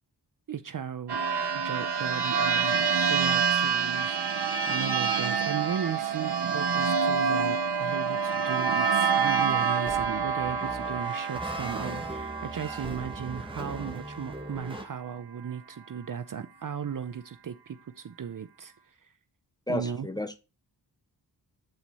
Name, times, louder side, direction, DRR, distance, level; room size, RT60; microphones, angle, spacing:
voice 1, 0.5-1.2 1.5-2.8 3.1-18.7 19.7-20.1, right 7 dB, 50° right, 0.6 m, -36 dB
sound 1, 1.1-14.3, right 6 dB, 65° right, 1.2 m, -27 dB
sound 2, 9.5-14.9, right 1 dB, 10° right, 1.5 m, -40 dB
voice 2, 19.7-20.4, left 1 dB, 10° left, 1.0 m, -32 dB
8.0 x 4.3 x 4.1 m
cardioid pair, 55°, 42 cm